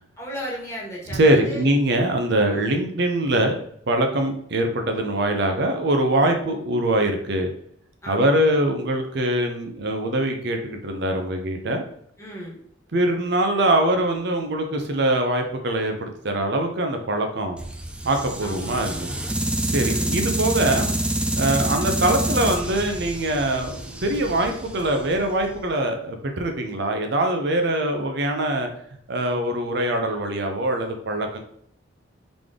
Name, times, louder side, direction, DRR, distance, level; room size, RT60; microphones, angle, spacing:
voice 1, 0.2-1.6 2.3-2.8 8.0-8.5 12.2-12.6 18.4-18.9 19.8-20.2, equal, 15° left, -4 dB, 1.5 m, -35 dB
voice 2, 1.1-7.5 8.1-11.8 12.9-17.6 18.0-19.1 19.6-20.9 21.4-28.7 29.1-31.4, right 1 dB, 60° right, 4 dB, 0.6 m, -23 dB
sound 1, 17.6-25.7, right 1 dB, 5° right, 0.3 m, -27 dB
4.0 x 3.3 x 3.6 m, 0.67 s
head